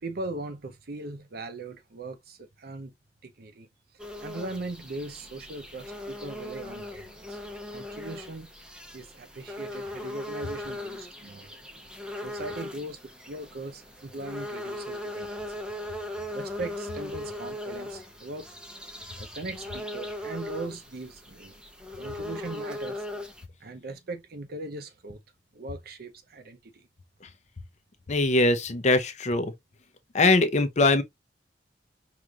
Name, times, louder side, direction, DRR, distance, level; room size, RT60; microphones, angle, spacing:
voice 1, 0.0-2.9 3.2-3.7 4.2-7.4 7.7-8.5 8.9-11.7 12.2-15.5 16.3-18.5 19.1-21.6 22.0-23.0 23.6-25.2 25.5-26.9, right 2 dB, 60° right, 0.7 m, -39 dB
sound 1, 4.0-23.4, left 1 dB, 5° right, 0.7 m, -39 dB
voice 2, 28.1-29.5 30.1-31.0, left 2 dB, 40° left, 0.7 m, -22 dB
4.9 x 3.0 x 2.4 m
head